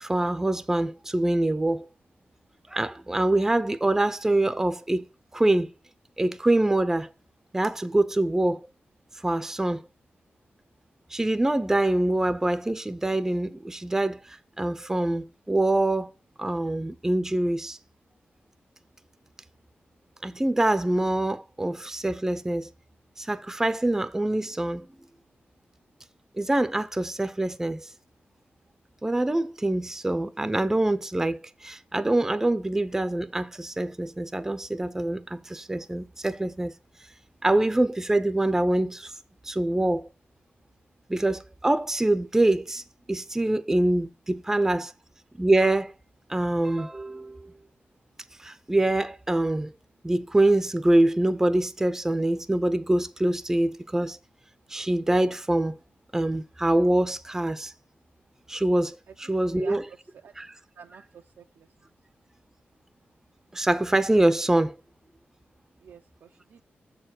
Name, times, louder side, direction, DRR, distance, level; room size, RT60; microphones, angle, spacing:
voice 1, 0.0-1.9 2.7-5.7 6.2-7.1 7.5-8.6 9.2-9.8 11.1-16.1 16.4-17.8 20.2-22.7 23.2-24.9 26.4-27.9 29.0-36.7 37.4-39.1 39.4-40.1 41.1-44.9 45.4-45.9 46.3-47.5 48.4-49.7 50.0-54.2 54.7-55.7 56.1-57.7 58.5-59.9 60.4-60.5 63.5-64.8, right 1 dB, 10° right, 0.5 m, -25 dB
voice 2, 60.8-61.7 65.8-66.6, right 6 dB, 80° right, 0.5 m, -47 dB
7.2 x 4.6 x 5.9 m
wide cardioid pair, 115°, 4 cm